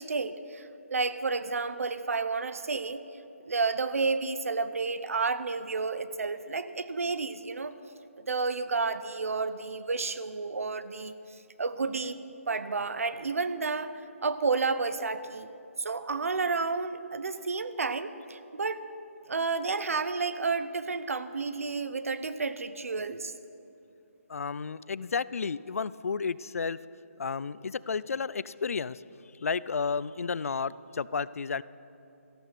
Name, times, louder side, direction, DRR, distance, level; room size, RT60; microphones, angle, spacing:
voice 1, 0.0-3.0 3.5-7.7 8.2-11.1 11.6-12.2 12.5-13.9 14.2-15.5 15.8-18.9 19.3-23.3, right 4 dB, 70° right, 13 dB, 0.8 m, -31 dB
voice 2, 24.3-26.8 27.2-29.0 29.4-31.6, left 5 dB, 75° left, 19 dB, 0.4 m, -32 dB
14.0 x 12.0 x 5.9 m, 2.8 s
hypercardioid pair, 180°, 8 cm